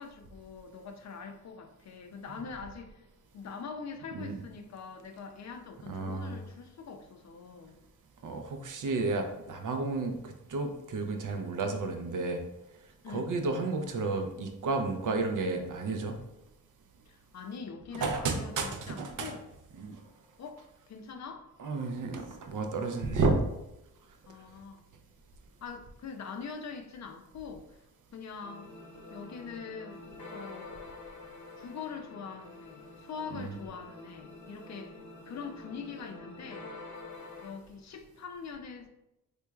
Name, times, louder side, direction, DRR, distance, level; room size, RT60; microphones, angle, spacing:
voice 1, 0.0-3.1 3.3-7.8 13.0-13.3 17.1-19.4 20.4-21.5 24.3-24.8 25.6-27.9 28.1-28.7 29.1-30.8 31.6-35.0 35.3-36.7 37.4-38.9, left 5 dB, 50° left, 6 dB, 0.5 m, -43 dB
voice 2, 5.9-6.4 8.2-12.4 13.1-16.2 18.0-19.3 19.8-20.0 21.6-23.4 33.3-33.5, right 3 dB, 60° right, 5 dB, 0.6 m, -32 dB
sound 1, 28.4-37.5, left 2 dB, 75° left, 0.8 m, -47 dB
3.3 x 3.0 x 2.3 m, 0.90 s
cardioid pair, 80°, 36 cm